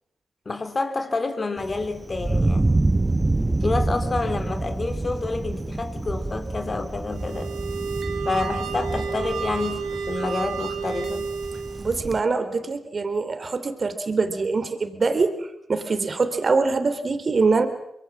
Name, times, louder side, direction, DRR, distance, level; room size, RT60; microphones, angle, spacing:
voice 1, 0.5-2.8 3.6-7.5 8.2-11.3, left 3 dB, 45° left, 3.7 m, -28 dB
Thunder, 1.6-12.2, right 2 dB, 25° right, 1.4 m, -27 dB
sound 1, 7.1-12.0, right 5 dB, 85° right, 2.1 m, -31 dB
voice 2, 11.8-17.7, right 4 dB, 55° right, 3.5 m, -24 dB
24.5 x 22.0 x 7.5 m
supercardioid pair, 40°, 0 cm